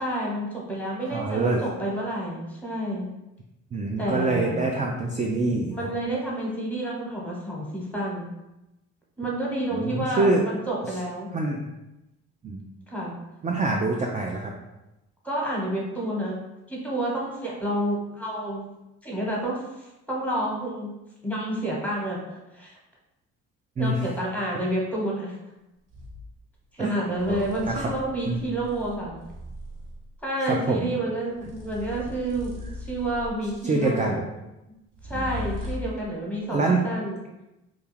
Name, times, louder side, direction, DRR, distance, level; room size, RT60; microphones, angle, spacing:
voice 1, 0.0-3.1 4.0-4.5 5.7-8.3 9.2-11.3 12.9-13.2 15.2-16.4 16.7-18.6 19.0-20.9 21.2-22.8 23.8-25.3 26.7-29.2 30.2-34.2 35.0-37.2, right 1 dB, 5° left, -4 dB, 1.1 m, -29 dB
voice 2, 1.1-1.6 3.7-5.9 9.7-10.4 11.3-11.7 12.4-12.6 13.4-14.5 23.8-24.0 26.8-27.0 27.3-27.9 28.3-28.4 30.4-30.9 33.6-34.2 35.1-35.5 36.5-36.8, right 2 dB, 20° right, 0 dB, 0.3 m, -25 dB
floor rubbing, 25.9-26.2 27.1-30.1 31.3-33.6 34.9-36.0, left 2 dB, 45° right, 0.9 m, -38 dB
2.4 x 2.2 x 3.2 m, 0.96 s
hypercardioid pair, 55°, 38 cm